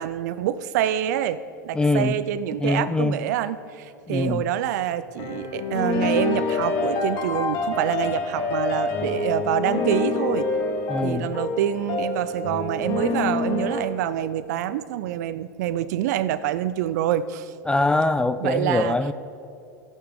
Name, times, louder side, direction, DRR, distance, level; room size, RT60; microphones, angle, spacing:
voice 1, 0.0-10.5 11.0-17.5 18.4-19.0, right 11 dB, 65° right, 15 dB, 0.4 m, -26 dB
voice 2, 1.7-2.2 2.6-3.2 4.1-4.4 10.9-11.3 17.7-19.1, left 2 dB, 10° left, 12 dB, 0.4 m, -23 dB
sound 1, 5.2-13.8, left 3 dB, 50° left, 1.6 m, -26 dB
15.0 x 8.1 x 3.8 m, 2.6 s
hypercardioid pair, 85°, 10 cm